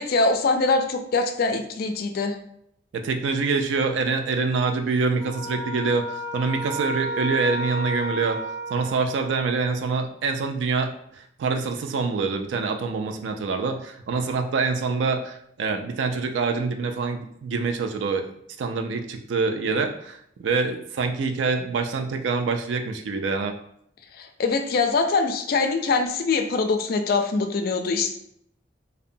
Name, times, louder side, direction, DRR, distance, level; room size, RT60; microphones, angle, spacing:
voice 1, 0.0-2.3 24.2-28.1, left 3 dB, 55° left, 5 dB, 0.3 m, -23 dB
voice 2, 2.9-8.4 8.7-18.2 18.6-23.5, right 4 dB, 75° right, 6 dB, 0.3 m, -25 dB
sound 1, 5.2-9.6, equal, 15° right, 0.5 m, -32 dB
2.8 x 2.1 x 2.6 m, 0.71 s
head